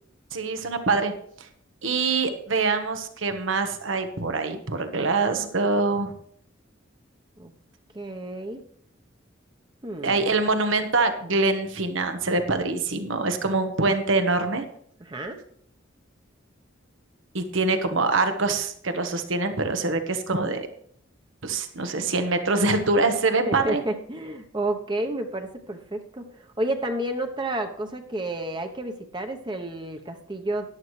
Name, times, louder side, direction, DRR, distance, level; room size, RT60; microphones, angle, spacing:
voice 1, 0.3-1.1 1.8-6.1 10.0-14.6 17.3-20.7 21.4-23.8, right 3 dB, 85° right, 7 dB, 1.3 m, -24 dB
voice 2, 7.9-8.6 9.8-10.3 15.0-15.4 23.5-30.7, right 1 dB, 25° right, 5 dB, 0.9 m, -31 dB
14.0 x 11.0 x 3.3 m, 0.63 s
head